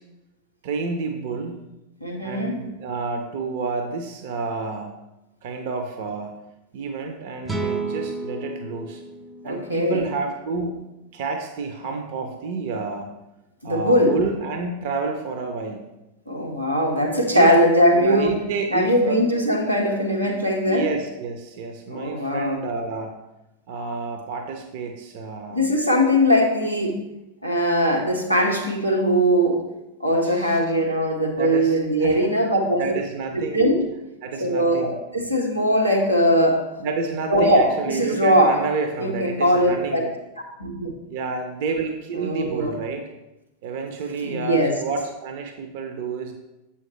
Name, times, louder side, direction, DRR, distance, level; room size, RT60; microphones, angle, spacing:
voice 1, 0.6-1.6 2.2-5.0 5.4-6.4 6.7-9.0 9.4-10.8 11.1-13.1 13.6-15.9 17.3-17.6 17.9-19.2 20.2-20.3 20.7-23.2 23.7-25.7 30.2-30.6 31.4-32.2 32.8-33.6 34.2-35.0 36.8-40.1 41.1-43.0 43.6-46.3, right 4 dB, 50° right, 5 dB, 0.7 m, -29 dB
voice 2, 2.0-2.6 9.4-10.0 13.6-14.2 16.3-18.3 18.7-20.9 21.9-22.6 25.5-27.0 27.4-29.6 30.0-32.9 33.3-33.8 34.4-36.6 37.3-38.6 39.0-40.1 40.6-40.9 42.1-42.7 44.2-44.8, equal, 90° right, 0 dB, 1.0 m, -20 dB
sound 1, 7.4-10.8, right 3 dB, 10° right, 0.6 m, -32 dB
7.6 x 5.7 x 3.2 m, 0.95 s
figure-of-eight pair, 90°, 0 cm